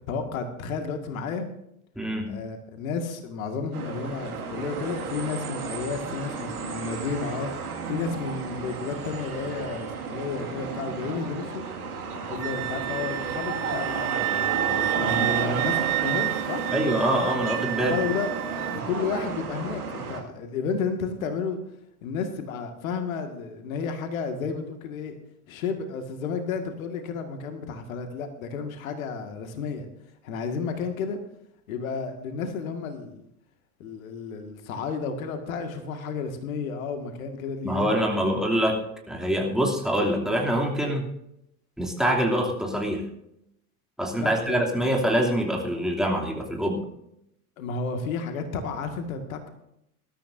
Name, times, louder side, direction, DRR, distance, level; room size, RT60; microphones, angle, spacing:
voice 1, 0.1-1.5 2.3-11.6 12.3-16.6 17.8-18.3 18.7-21.6 22.0-25.1 25.5-29.9 30.2-31.2 31.7-33.2 33.8-38.3 44.2-44.6 47.6-49.5, left 5 dB, 60° left, 6 dB, 2.1 m, -32 dB
voice 2, 1.9-2.3 16.7-18.0 37.6-38.8 39.1-41.1 41.8-43.0 44.0-46.8, equal, ahead, 0 dB, 2.8 m, -25 dB
sound 1, 3.7-20.2, right 5 dB, 75° right, 2.2 m, -32 dB
Wind instrument woodwind instrument, 12.4-18.8, right 17 dB, 45° right, 0.8 m, -30 dB
20.5 x 13.0 x 2.7 m, 0.79 s
figure-of-eight pair, 80°, 46 cm